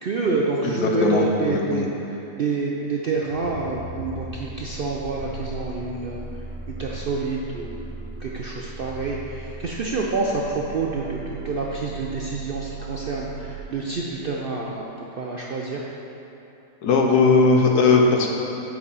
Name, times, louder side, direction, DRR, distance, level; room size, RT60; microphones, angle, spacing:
voice 1, 0.0-6.2 6.7-7.9 8.2-15.9, right 3 dB, 60° right, -2 dB, 0.5 m, -28 dB
voice 2, 0.6-1.8 16.8-18.3, left 4 dB, 85° left, 1 dB, 1.4 m, -18 dB
sound 1, 3.1-13.6, right 3 dB, 70° left, 1.9 m, -37 dB
8.5 x 4.7 x 5.5 m, 2.9 s
omnidirectional pair, 1.6 m